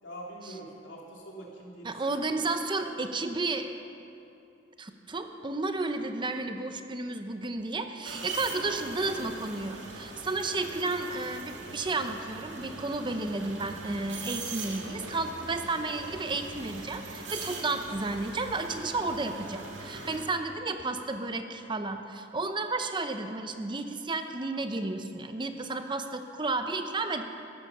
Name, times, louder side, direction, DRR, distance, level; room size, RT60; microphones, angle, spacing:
voice 1, 0.0-3.2 8.6-9.2, right 1 dB, 80° left, -2 dB, 3.0 m, -45 dB
voice 2, 1.8-3.7 4.8-27.2, right 3 dB, 25° right, 7 dB, 0.7 m, -32 dB
sound 1, 8.1-20.2, right 3 dB, 70° right, 2.0 m, -41 dB
14.0 x 11.5 x 6.9 m, 2.6 s
head